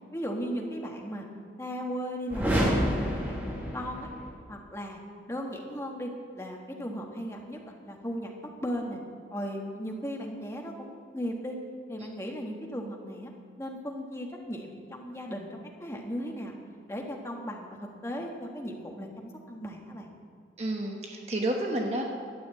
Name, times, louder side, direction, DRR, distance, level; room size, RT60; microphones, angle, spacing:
voice 1, 0.1-1.3 1.6-4.1 4.5-5.0 5.3-8.3 8.6-9.0 9.3-11.6 11.9-13.3 13.6-16.6 16.9-20.1, equal, 15° left, 0 dB, 1.4 m, -37 dB
sound 1, 2.3-4.3, equal, 10° right, 2.3 m, -28 dB
voice 2, 20.6-22.0, right 1 dB, 35° right, 1 dB, 1.1 m, -30 dB
12.0 x 7.1 x 8.5 m, 2.1 s
head